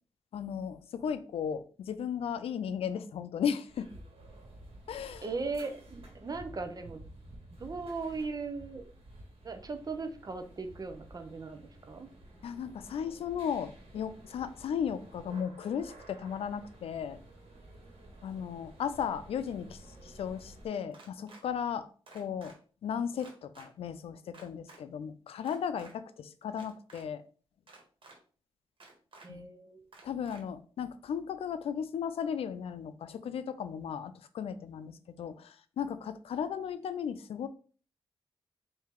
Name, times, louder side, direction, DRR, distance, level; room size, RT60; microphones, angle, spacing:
voice 1, 0.3-3.9 4.9-5.2 12.4-17.2 18.2-22.5 22.8-27.2 29.3-29.5 30.0-37.5, left 7 dB, 90° left, 12 dB, 0.4 m, -36 dB
sound 1, 3.7-20.7, right 1 dB, 85° right, 1.5 m, -52 dB
voice 2, 5.2-7.0 7.6-8.8 9.4-12.1 29.2-29.9, right 4 dB, 40° right, 7 dB, 0.7 m, -38 dB
sound 2, 20.9-21.4 22.1-22.5 23.2-23.7 24.3-24.8 25.4-25.9 26.5-27.0 27.7-28.2 28.8-29.3 29.9-30.4, right 3 dB, 65° right, 1.4 m, -53 dB
4.4 x 2.7 x 3.6 m, 0.40 s
cardioid pair, 85°, 10 cm